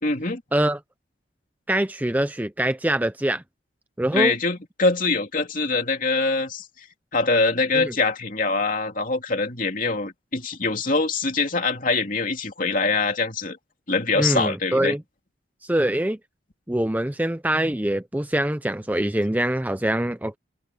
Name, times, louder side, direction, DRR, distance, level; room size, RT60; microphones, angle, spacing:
voice 1, 0.0-0.4 4.1-6.7 7.1-13.6 13.9-14.9, left 3 dB, 45° left, 2.9 m, -23 dB
voice 2, 1.7-3.4 4.0-4.3 7.7-7.9 14.1-15.0 15.6-16.2 16.7-20.4, right 1 dB, 10° right, 0.5 m, -24 dB
head